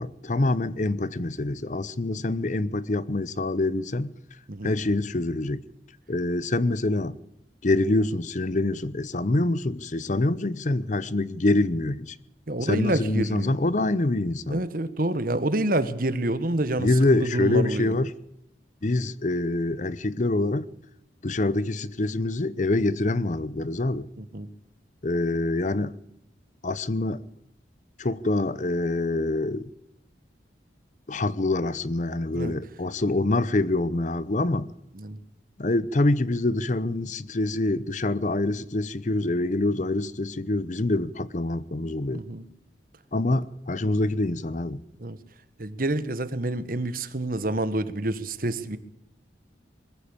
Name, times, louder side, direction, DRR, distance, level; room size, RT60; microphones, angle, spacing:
voice 1, 0.0-4.1 4.6-5.6 6.1-7.2 7.6-12.2 12.6-14.6 16.8-18.1 18.8-20.7 21.2-24.1 25.0-26.0 26.6-27.2 28.0-29.7 31.1-34.7 35.6-42.2 43.1-44.8, left 2 dB, 45° left, 0.7 m, -25 dB
voice 2, 12.5-13.6 14.5-17.9 24.2-24.5 32.3-32.6 34.9-35.2 42.1-42.4 45.0-45.2 45.6-48.8, right 1 dB, 50° right, 1.3 m, -28 dB
21.5 x 15.0 x 8.7 m
head